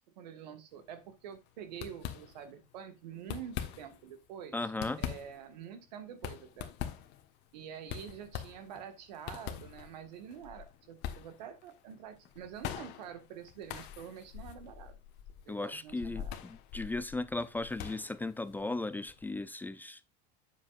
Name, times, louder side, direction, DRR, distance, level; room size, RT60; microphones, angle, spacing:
voice 1, 0.2-4.6 5.0-6.7 7.5-15.0 15.5-16.4, right 8 dB, 90° right, 1.6 m, -47 dB
sound 1, 0.8-1.1 1.3-1.5 1.8-2.7 3.1-4.1 4.5-19.4, left 10 dB, 55° left, 1.3 m, -44 dB
voice 2, 4.5-5.0 15.5-20.0, left 2 dB, 10° left, 0.4 m, -36 dB
8.6 x 7.4 x 2.5 m
supercardioid pair, 120°, 21 cm